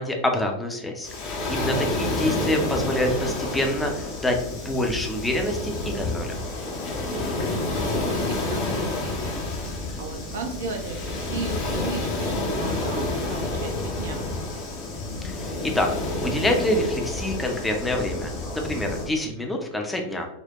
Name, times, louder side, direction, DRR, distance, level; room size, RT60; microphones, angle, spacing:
voice 1, 0.0-6.4 15.2-15.9 16.2-20.3, left 1 dB, 10° left, 2 dB, 0.6 m, -26 dB
Waves surf, 1.0-19.1, left 2 dB, 40° left, 0.7 m, -29 dB
voice 2, 7.1-14.3, right 4 dB, 60° right, 4 dB, 0.6 m, -37 dB
4.3 x 2.1 x 2.9 m, 0.86 s
figure-of-eight pair, 90°, 0 cm